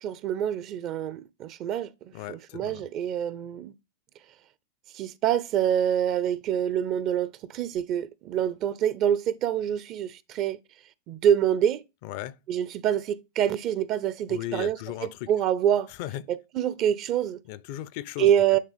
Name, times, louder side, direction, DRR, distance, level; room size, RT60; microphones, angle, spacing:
voice 1, 0.0-1.9 2.3-3.7 4.9-10.6 11.1-11.8 12.5-15.9 16.3-17.4 18.2-18.6, right 10 dB, 45° right, 0.5 m, -26 dB
voice 2, 2.1-2.8 12.0-12.4 14.3-15.3 16.0-16.2 17.5-18.3, left 13 dB, 55° left, 0.5 m, -36 dB
8.7 x 3.5 x 3.4 m
hypercardioid pair, 95°, 0 cm